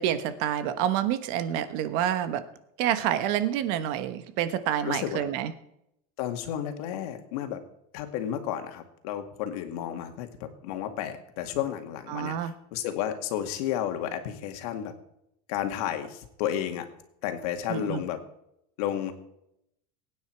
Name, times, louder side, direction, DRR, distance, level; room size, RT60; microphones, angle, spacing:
voice 1, 0.0-2.4 2.8-5.5 12.1-12.5 17.7-18.0, right 10 dB, 55° right, 12 dB, 1.2 m, -28 dB
voice 2, 4.8-5.2 6.2-7.6 7.9-14.9 15.5-16.9 17.2-18.2 18.8-19.1, left 10 dB, 70° left, 6 dB, 2.1 m, -32 dB
22.5 x 9.5 x 4.6 m, 0.79 s
cardioid pair, 170°, 20 cm